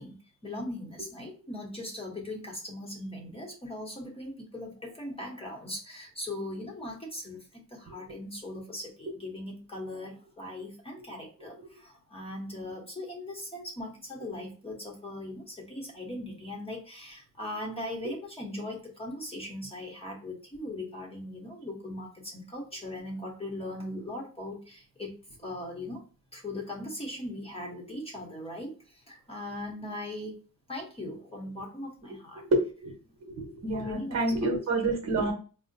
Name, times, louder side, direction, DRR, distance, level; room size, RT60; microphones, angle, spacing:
voice 1, 0.0-26.0 26.3-32.5 33.7-34.5, left 1 dB, 20° left, 0 dB, 0.9 m, -39 dB
voice 2, 32.4-32.9 33.4-35.3, right 2 dB, 55° right, 2 dB, 0.9 m, -28 dB
4.8 x 2.1 x 2.6 m, 0.37 s
cardioid pair, 145°, 33 cm